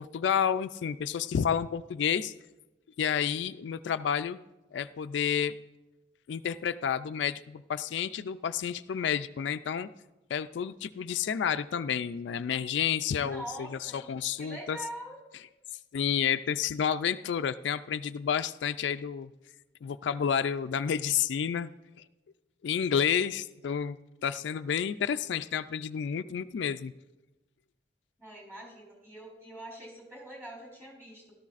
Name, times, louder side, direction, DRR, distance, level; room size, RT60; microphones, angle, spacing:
voice 1, 0.0-2.3 3.0-4.4 4.7-5.5 6.3-9.9 10.3-14.8 15.9-19.3 19.8-21.7 22.6-24.0 24.2-26.9, left 8 dB, 70° left, 11 dB, 0.3 m, -30 dB
voice 2, 13.2-14.1 14.4-15.2 28.2-31.3, right 1 dB, 15° right, -1 dB, 3.8 m, -44 dB
17.0 x 12.5 x 2.5 m, 1.1 s
head